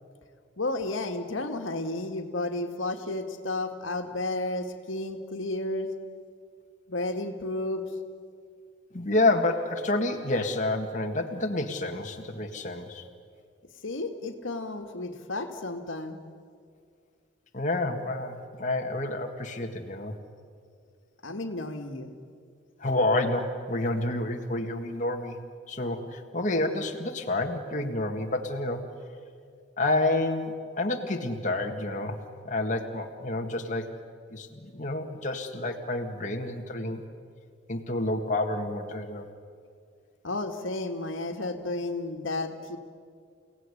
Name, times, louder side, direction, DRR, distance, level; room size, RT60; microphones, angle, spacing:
voice 1, 0.6-5.9 6.9-7.9 13.8-16.2 21.2-22.1 40.2-42.8, left 2 dB, 85° left, 5 dB, 2.0 m, -32 dB
voice 2, 8.9-13.1 17.5-20.2 22.8-25.4 25.7-28.9 29.8-32.2 32.4-33.9 34.3-37.0 37.7-39.3, left 2 dB, 40° left, 2 dB, 1.8 m, -29 dB
30.0 x 17.0 x 9.9 m, 2.2 s
head